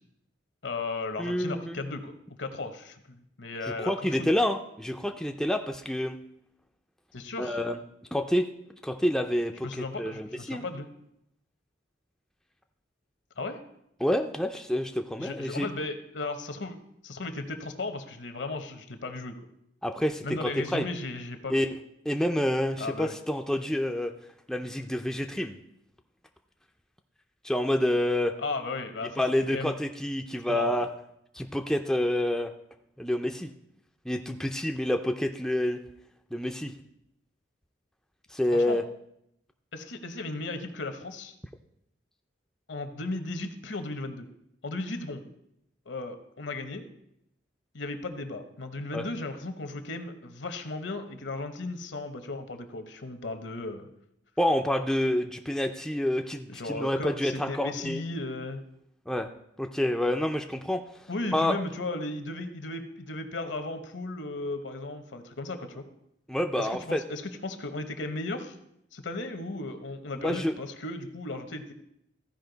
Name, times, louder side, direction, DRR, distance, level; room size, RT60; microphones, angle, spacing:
voice 1, 0.6-2.1 2.4-4.3 7.1-7.6 9.6-10.9 13.4-13.6 15.2-16.8 17.0-19.4 20.2-21.6 22.8-23.2 28.4-29.2 29.5-29.7 30.5-30.7 38.5-38.8 39.7-41.3 42.7-44.3 44.6-45.2 45.9-46.9 47.7-53.9 56.5-58.6 61.1-65.8 66.5-68.6 68.9-71.7, left 2 dB, 65° left, 8 dB, 0.9 m, -35 dB
voice 2, 1.2-1.8 3.9-6.2 7.4-7.8 8.1-8.5 8.8-10.6 14.0-15.7 19.8-20.9 21.5-21.7 22.1-24.1 24.5-25.6 27.4-28.3 29.2-30.9 31.3-32.5 33.0-33.5 34.1-35.8 36.3-36.7 38.3-38.8 48.9-49.0 54.4-58.0 59.1-59.3 59.6-61.1 61.3-61.6 66.3-67.0 70.2-70.5, left 1 dB, 5° left, 4 dB, 0.4 m, -28 dB
14.5 x 5.1 x 3.9 m, 0.78 s
head